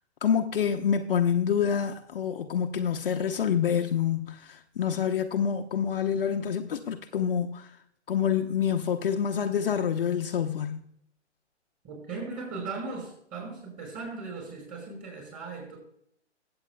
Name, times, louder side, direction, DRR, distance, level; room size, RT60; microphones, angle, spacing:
voice 1, 0.2-7.7 8.1-10.8, left 8 dB, 50° left, 0.8 m, -27 dB
voice 2, 11.8-15.8, right 4 dB, 20° right, 4.8 m, -38 dB
21.0 x 8.0 x 2.3 m
figure-of-eight pair, 125°, 37 cm